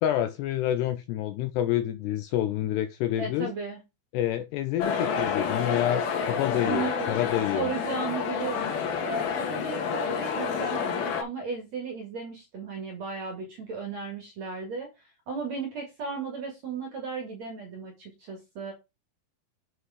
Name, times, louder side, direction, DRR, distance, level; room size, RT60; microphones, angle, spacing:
voice 1, 0.0-3.5 4.1-7.7, left 12 dB, 90° left, 2.4 m, -28 dB
voice 2, 3.2-3.8 6.5-7.1 7.5-8.7 9.0-18.7, right 5 dB, 50° right, 2.4 m, -35 dB
sound 1, 4.8-11.2, left 6 dB, 60° left, 3.1 m, -29 dB
8.0 x 5.2 x 4.9 m
omnidirectional pair, 5.6 m